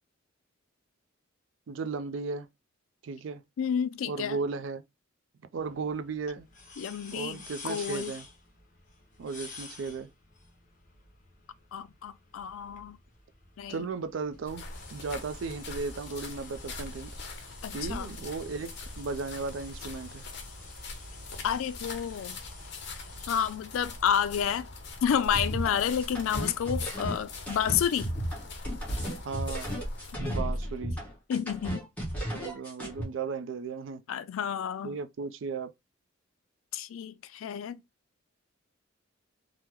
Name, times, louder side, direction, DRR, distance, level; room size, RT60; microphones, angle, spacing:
voice 1, 1.7-2.5 3.0-3.4 4.1-4.8 5.5-6.5 7.1-8.3 9.2-10.1 13.7-14.6 14.9-17.1 17.7-18.7 19.0-20.2 29.2-29.7 30.2-31.0 32.2-34.0 34.8-35.7, right 4 dB, 70° right, 0.4 m, -35 dB
voice 2, 3.6-4.4 6.8-8.1 11.7-13.0 13.6-13.9 17.6-18.1 21.4-22.4 23.3-24.7 25.0-28.1 30.2-30.5 31.3-31.8 34.1-35.0 36.7-37.8, left 8 dB, 90° left, 0.3 m, -30 dB
sound 1, 5.5-23.6, left 4 dB, 40° left, 0.9 m, -50 dB
sound 2, 14.4-30.1, left 3 dB, 60° left, 0.7 m, -43 dB
sound 3, 25.3-33.0, equal, 10° left, 1.2 m, -33 dB
3.5 x 2.0 x 2.9 m
head